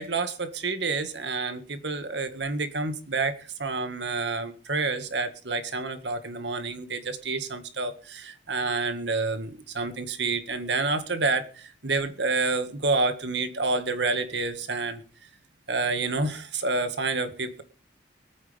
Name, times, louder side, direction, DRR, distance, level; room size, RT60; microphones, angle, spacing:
voice 1, 0.0-15.0 15.7-17.6, right 3 dB, 70° right, 9 dB, 1.8 m, -28 dB
24.0 x 9.2 x 3.5 m, 0.39 s
head